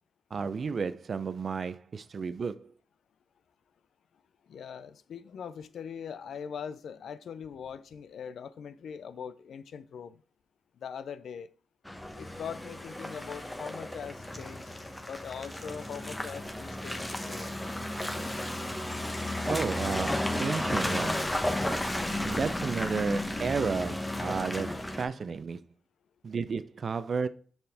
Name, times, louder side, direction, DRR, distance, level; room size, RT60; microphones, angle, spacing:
voice 1, 0.3-2.7 19.5-21.3 22.3-25.6 26.2-27.3, right 5 dB, 50° right, 0.5 m, -32 dB
voice 2, 4.5-10.2 10.8-11.5 12.1-14.6 15.1-17.5, left 7 dB, 80° left, 0.5 m, -41 dB
Car passing by / Engine, 11.9-25.0, left 1 dB, 10° left, 0.9 m, -33 dB
6.9 x 5.8 x 3.5 m
wide cardioid pair, 115°, 0 cm